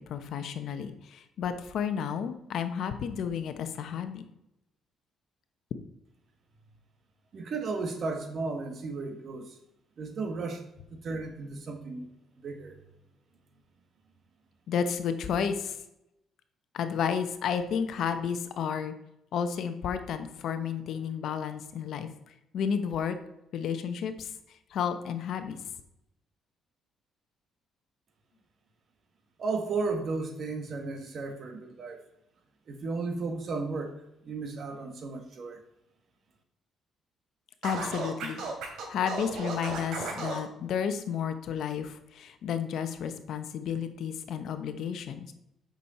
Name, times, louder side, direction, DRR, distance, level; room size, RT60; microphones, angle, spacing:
voice 1, 0.0-4.2 14.7-15.8 16.7-18.9 19.3-22.1 22.5-23.2 23.5-24.3 24.7-25.6 37.6-38.4 38.9-45.3, left 7 dB, 65° left, 9 dB, 0.9 m, -32 dB
voice 2, 7.3-9.6 10.0-10.6 10.9-12.1 12.4-12.7 29.4-32.0 32.7-34.0 34.2-35.6, right 3 dB, 50° right, 4 dB, 1.6 m, -34 dB
Scratching (performance technique), 37.6-40.4, right 4 dB, 75° right, 3.0 m, -35 dB
8.4 x 6.3 x 4.3 m, 0.83 s
cardioid pair, 110°, 0 cm